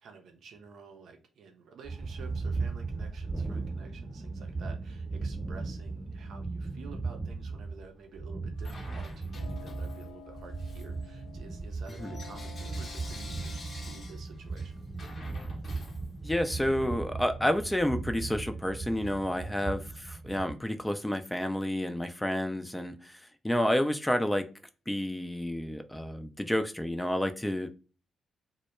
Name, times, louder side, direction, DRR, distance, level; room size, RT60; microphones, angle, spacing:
voice 1, 0.0-14.8, right 5 dB, 65° right, 4 dB, 0.5 m, -51 dB
sound 1, 1.8-20.5, right 3 dB, 30° right, 0.9 m, -37 dB
Bell / Coin (dropping), 8.6-10.2 10.5-16.5, left 3 dB, 50° left, 0.7 m, -49 dB
sound 2, 9.4-11.7 12.0-14.0, left 5 dB, 85° left, 0.4 m, -50 dB
voice 2, 16.2-24.5 24.9-27.7, left 1 dB, 10° left, 8 dB, 0.4 m, -30 dB
2.1 x 2.1 x 2.9 m, 0.34 s
hypercardioid pair, 40°, 0 cm